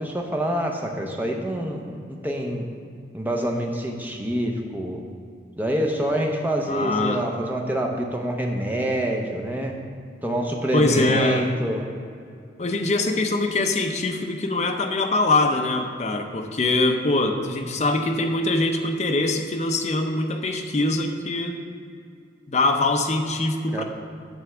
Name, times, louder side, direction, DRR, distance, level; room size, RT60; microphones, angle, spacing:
voice 1, 0.0-2.6 3.1-5.0 5.6-9.7 10.2-11.9 23.7-23.8, equal, 10° right, 1 dB, 0.7 m, -26 dB
voice 2, 6.7-7.2 10.7-11.5 12.6-21.6 22.5-23.8, left 2 dB, 35° left, 4 dB, 0.6 m, -23 dB
9.3 x 3.5 x 6.9 m, 2.3 s
head